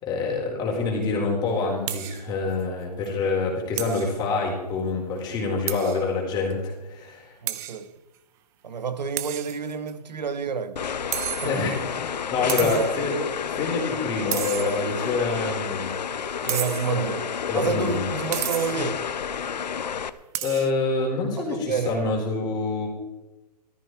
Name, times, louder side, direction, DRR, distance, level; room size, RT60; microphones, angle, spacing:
voice 1, 0.0-7.3 11.4-13.2 13.5-15.9 16.9-17.1 17.5-18.1 20.4-22.9, left 3 dB, 20° left, 4.1 m, -26 dB
sound 1, 1.9-2.3 2.6-2.7 3.0-3.1 3.8-4.1 5.7-6.1 6.5-6.6 7.5-7.8 9.2-9.9 11.1-11.8 12.5-13.0 14.3-15.1 16.5-17.0 18.3-18.9 20.3-20.7, right 14 dB, 15° right, 0.4 m, -32 dB
voice 2, 7.4-7.9 8.6-10.9 11.4-11.5 12.6-12.9 16.4-17.3 17.5-19.0 21.4-22.2, right 6 dB, 80° right, 1.6 m, -29 dB
sound 2, 10.8-20.1, left 7 dB, 80° left, 1.0 m, -30 dB
14.5 x 13.5 x 4.7 m
hypercardioid pair, 150°, 21 cm